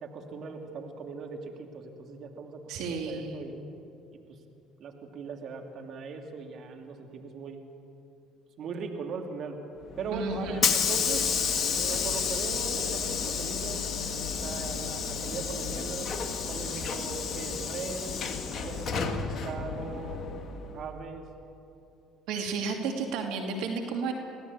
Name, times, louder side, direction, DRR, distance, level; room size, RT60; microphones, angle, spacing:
voice 1, 0.0-3.5 4.3-4.4 4.8-7.6 8.6-9.6 10.0-11.3 11.7-13.8 14.4-16.1 16.4-18.2 18.6-20.2 20.7-21.3, right 4 dB, 55° right, 3 dB, 2.7 m, -39 dB
voice 2, 2.7-3.4 10.1-10.6 22.3-24.1, right 4 dB, 70° right, 3 dB, 2.6 m, -32 dB
Hiss / Sliding door, 9.9-20.8, left 6 dB, 45° left, 2.4 m, -31 dB
25.0 x 17.0 x 8.6 m, 2.7 s
hypercardioid pair, 65°, 0 cm